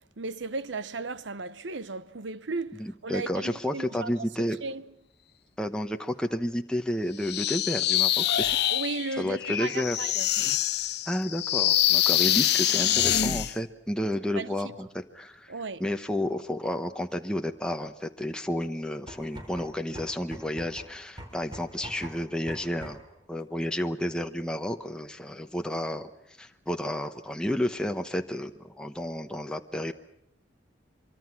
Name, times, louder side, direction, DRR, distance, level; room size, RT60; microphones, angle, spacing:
voice 1, 0.2-4.1 4.6-4.8 8.7-10.3 14.3-14.5 15.5-15.8, right 3 dB, 80° right, 0.9 m, -35 dB
voice 2, 2.8-4.6 5.6-8.5 9.2-10.0 11.1-15.5 15.8-23.0 23.3-26.1 26.4-29.9, left 1 dB, 5° left, 1.0 m, -31 dB
sound 1, 7.2-13.5, left 12 dB, 65° left, 0.9 m, -25 dB
sound 2, 19.1-23.2, right 1 dB, 25° right, 4.2 m, -44 dB
25.0 x 24.0 x 6.0 m
head